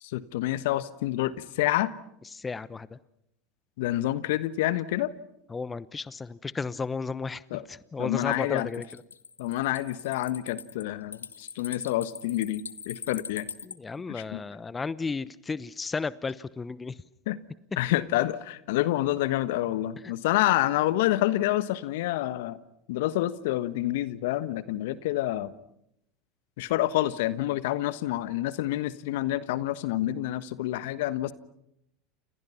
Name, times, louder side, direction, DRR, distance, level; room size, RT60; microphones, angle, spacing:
voice 1, 0.0-1.9 3.8-5.1 7.5-7.6 8.0-8.7 9.4-13.5 14.1-14.4 17.3-17.4 17.8-22.6 22.9-25.5 26.6-31.3, left 15 dB, 65° left, 15 dB, 1.4 m, -28 dB
voice 2, 2.3-3.0 5.5-8.8 13.6-17.0, left 4 dB, 20° left, 18 dB, 0.9 m, -34 dB
sound 1, 8.2-13.8, left 6 dB, 85° left, 0.9 m, -42 dB
30.0 x 28.5 x 5.8 m, 0.78 s
hypercardioid pair, 85°, 0 cm